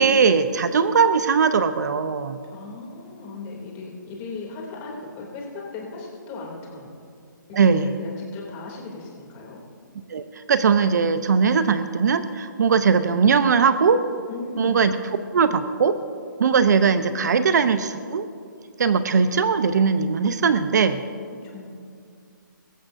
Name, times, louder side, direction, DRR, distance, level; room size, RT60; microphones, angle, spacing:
voice 1, 0.0-2.4 7.5-7.9 10.1-14.0 14.6-14.9 15.3-16.0 16.4-18.3 18.8-21.0, right 5 dB, 55° right, 11 dB, 0.7 m, -20 dB
voice 2, 2.5-6.9 7.5-9.6 14.3-14.8 21.4-21.7, left 3 dB, 20° left, -1 dB, 2.7 m, -37 dB
23.0 x 14.0 x 2.6 m, 2.3 s
hypercardioid pair, 155°, 11 cm